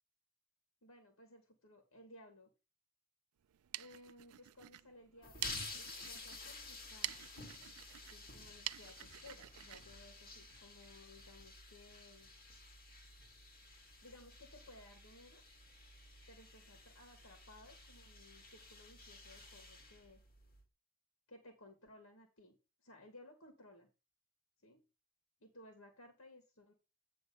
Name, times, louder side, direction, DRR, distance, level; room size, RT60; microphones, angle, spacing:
voice 1, 0.8-2.5 3.8-7.4 8.1-12.3 14.0-15.4 16.3-20.2 21.3-22.6 22.8-23.9 24.6-24.8 25.4-26.7, left 1 dB, 70° left, 5 dB, 1.9 m, -59 dB
sound 1, 3.4-10.9, right 15 dB, 85° right, 0.4 m, -49 dB
sound 2, 5.2-20.6, left 3 dB, 40° left, 2.0 m, -52 dB
9.4 x 3.4 x 6.8 m, 0.29 s
head